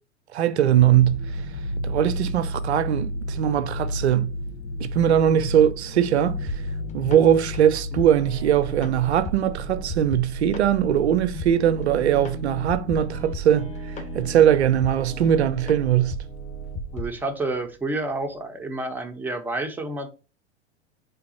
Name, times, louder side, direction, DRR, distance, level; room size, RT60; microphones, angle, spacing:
voice 1, 0.3-1.2 1.8-4.3 4.8-6.4 6.9-13.7 14.1-16.1, right 10 dB, 70° right, 0.5 m, -20 dB
sound 1, 0.7-17.7 18.0-18.3, equal, 85° left, 0.7 m, -34 dB
sound 2, 6.3-17.1, right 1 dB, 20° left, 0.8 m, -35 dB
voice 2, 16.9-20.1, right 2 dB, 5° right, 0.4 m, -29 dB
3.9 x 3.4 x 2.8 m
figure-of-eight pair, 85°, 34 cm